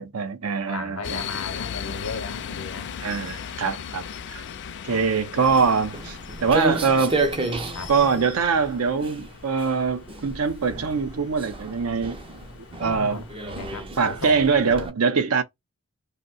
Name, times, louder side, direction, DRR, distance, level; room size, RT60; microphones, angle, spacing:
voice 1, 0.0-1.2 3.0-4.0 4.3-4.4 4.8-7.2 7.9-12.2 12.8-13.2 14.0-15.4, right 5 dB, 75° right, 0.6 m, -23 dB
voice 2, 0.7-2.9 4.9-5.0 6.5-6.8 7.7-8.3 12.7-14.9, left 4 dB, 80° left, 0.8 m, -36 dB
sound 1, 1.0-13.6, left 7 dB, 50° left, 0.4 m, -38 dB
Walk footsteps, 5.4-14.9, right 2 dB, 25° right, 0.4 m, -32 dB
2.6 x 2.1 x 4.0 m
head